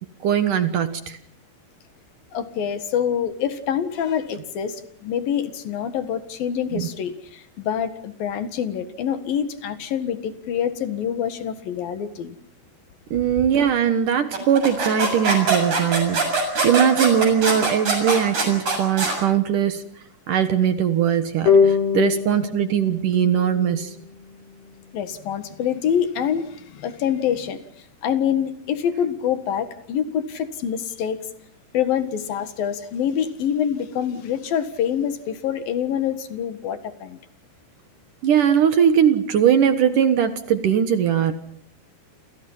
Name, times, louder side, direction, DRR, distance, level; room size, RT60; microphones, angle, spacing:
voice 1, 0.2-1.2 6.7-6.9 13.1-19.8 20.3-23.9 38.2-41.3, right 8 dB, 60° right, 10 dB, 2.5 m, -20 dB
voice 2, 2.3-12.3 24.9-27.6 28.0-31.3 31.7-37.2, left 8 dB, 65° left, 11 dB, 3.2 m, -26 dB
sound 1, 14.3-19.2, right 3 dB, 45° right, 8.4 m, -23 dB
sound 2, 21.5-24.7, left 6 dB, 85° left, 8.0 m, -23 dB
29.0 x 28.5 x 5.6 m, 0.67 s
omnidirectional pair, 4.8 m